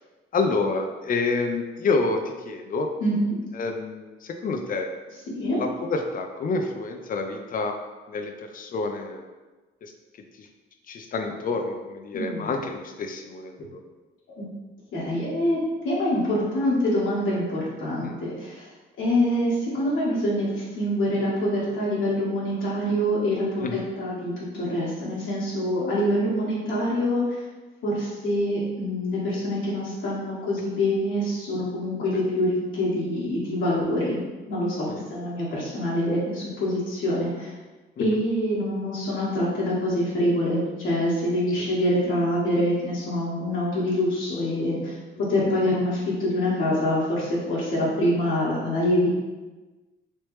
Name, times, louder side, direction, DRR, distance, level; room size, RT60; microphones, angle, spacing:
voice 1, 0.3-2.9 3.5-4.9 5.5-7.8 8.1-9.3 9.8-9.9 10.4-10.5 10.9-13.8 18.0-18.2 23.6-23.9 32.1-32.3 34.9-35.0 38.0-38.2 41.6-41.7, left 3 dB, 45° left, 4 dB, 0.5 m, -28 dB
voice 2, 3.0-3.4 5.3-5.6 12.1-12.5 14.4-14.5 14.9-15.6 15.8-18.6 19.0-27.4 27.8-34.2 34.5-37.5 38.0-45.0 45.3-49.1, left 1 dB, 75° left, -7 dB, 1.3 m, -25 dB
3.2 x 3.0 x 3.0 m, 1.2 s
cardioid pair, 90°, 20 cm